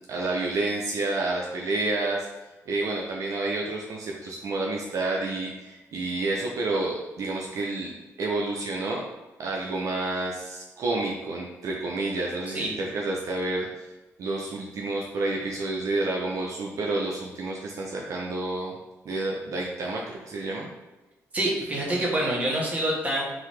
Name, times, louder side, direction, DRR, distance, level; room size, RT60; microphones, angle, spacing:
voice 1, 0.1-2.3 2.7-7.9 8.2-9.0 9.4-13.9 14.2-18.8 19.1-20.7, right 2 dB, 65° right, -1 dB, 0.5 m, -29 dB
voice 2, 21.3-23.2, right 1 dB, 25° right, -4 dB, 1.2 m, -26 dB
3.9 x 2.7 x 3.1 m, 1.1 s
cardioid pair, 90°, 6 cm